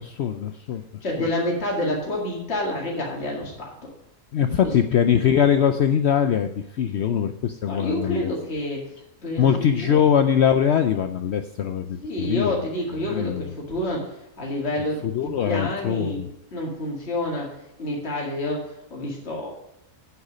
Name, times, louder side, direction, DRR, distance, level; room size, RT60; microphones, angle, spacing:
voice 1, 0.0-0.8 1.2-1.3 4.3-8.3 9.4-12.6 13.1-13.5 15.0-16.3, left 8 dB, 65° left, 8 dB, 0.7 m, -22 dB
voice 2, 1.0-3.9 4.6-4.7 7.7-8.9 9.2-9.5 9.8-10.0 12.0-16.2 16.5-19.5, left 1 dB, 45° left, -2 dB, 2.3 m, -28 dB
8.3 x 8.1 x 5.0 m, 0.86 s
omnidirectional pair, 1.5 m